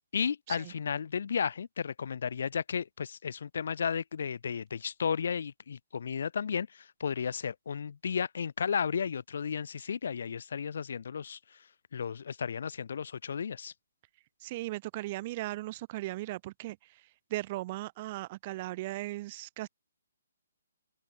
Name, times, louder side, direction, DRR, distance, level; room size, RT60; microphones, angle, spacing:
voice 1, 0.1-11.6 11.9-13.7, left 6 dB, 50° left, 1.8 m, -33 dB
voice 2, 14.4-16.8 17.3-19.7, right 18 dB, 20° right, 2.7 m, -37 dB
open air
hypercardioid pair, 175°, 0 cm